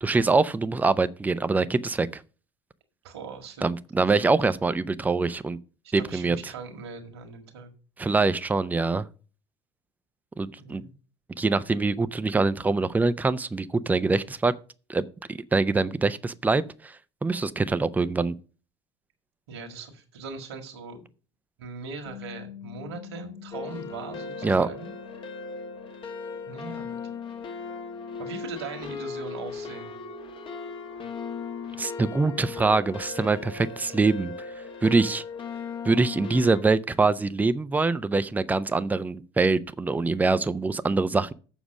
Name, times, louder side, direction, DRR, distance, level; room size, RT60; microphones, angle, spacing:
voice 1, 0.0-2.2 3.6-5.6 5.9-6.5 8.0-9.1 10.4-10.8 11.4-14.5 14.9-15.1 15.5-16.9 17.2-18.3 24.4-24.7 31.8-34.3 34.8-35.2 35.8-41.3, right 3 dB, 10° right, 0.5 m, -24 dB
voice 2, 3.0-3.6 4.1-4.2 5.8-7.7 10.6-10.9 19.5-21.1 21.6-24.9 26.5-27.0 28.2-30.0, right 4 dB, 70° right, 1.7 m, -40 dB
Bass guitar, 22.0-28.3, left 9 dB, 90° left, 1.3 m, -47 dB
sound 1, 23.5-36.6, left 5 dB, 40° left, 1.2 m, -37 dB
7.3 x 6.0 x 6.3 m
figure-of-eight pair, 65°, 14 cm